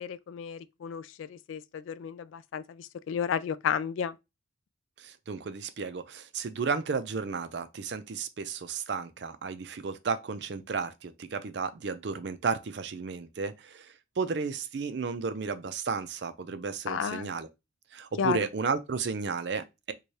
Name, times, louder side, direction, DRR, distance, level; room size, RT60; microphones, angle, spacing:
voice 1, 0.0-4.2 16.9-17.3 18.2-18.4, left 7 dB, 80° left, 0.3 m, -32 dB
voice 2, 5.0-17.5 17.9-19.9, right 5 dB, 60° right, 0.4 m, -33 dB
4.6 x 2.3 x 2.7 m
head